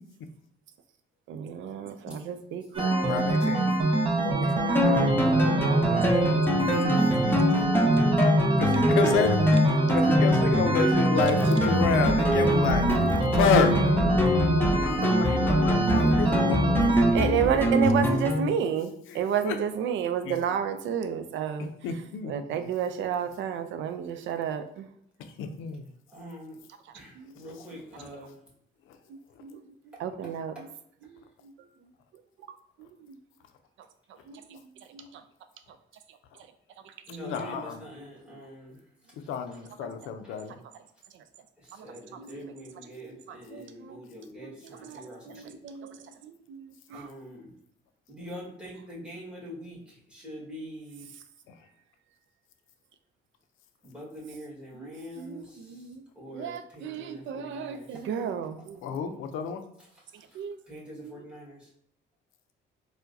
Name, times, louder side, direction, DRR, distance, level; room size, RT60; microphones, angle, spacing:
voice 1, 1.3-3.3 4.1-6.6 7.3-7.4 17.1-21.7 22.2-24.9 27.2-27.3 29.1-29.6 30.0-30.7 31.0-31.1 32.8-33.2 34.3-34.6 34.9-35.2 37.4-37.5 39.8-39.9 42.1-42.7 43.0-44.0 44.4-46.0 46.2-47.1 54.7-56.0 56.3-59.2 60.3-60.6 60.9-61.2, right 8 dB, 75° right, 9 dB, 0.4 m, -32 dB
sound 1, 2.7-17.1, right 2 dB, 25° right, 0.7 m, -25 dB
voice 2, 3.0-3.7 4.1-4.6 7.3-7.4 8.6-9.4 9.9-12.9 13.3-13.8 15.0-16.6 19.1-19.6 20.2-20.4 21.8-22.6 25.4-25.9 28.0-28.1 37.2-37.8 39.3-40.5 58.8-59.6, left 7 dB, 85° left, 7 dB, 0.5 m, -29 dB
sound 2, 4.8-18.5, left 1 dB, 10° left, 0.6 m, -25 dB
voice 3, 26.1-26.6 26.9-28.3 30.5-30.6 37.1-38.8 40.2-40.3 41.8-45.6 46.9-47.5 48.1-49.8 50.1-51.0 53.8-55.6 56.2-57.9 60.7-61.6, equal, 5° right, -6 dB, 1.5 m, -44 dB
4.5 x 2.1 x 2.6 m, 0.70 s
cardioid pair, 90°, 20 cm